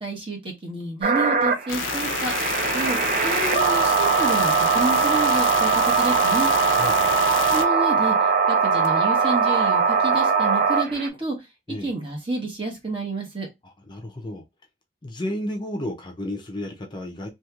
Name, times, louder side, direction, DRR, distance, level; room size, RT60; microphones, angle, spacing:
voice 1, 0.0-2.3 2.7-3.0 3.2-6.5 7.5-8.2 8.5-11.3 11.8-13.5, right 2 dB, 30° right, 1.1 m, -29 dB
sound 1, 1.0-11.1, right 5 dB, 45° right, 0.5 m, -21 dB
sound 2, 1.7-7.6, left 6 dB, 85° left, 0.5 m, -29 dB
voice 2, 6.8-7.2 11.7-11.9 13.6-14.4 15.0-17.3, left 1 dB, 25° left, 0.5 m, -32 dB
2.9 x 2.8 x 2.3 m
head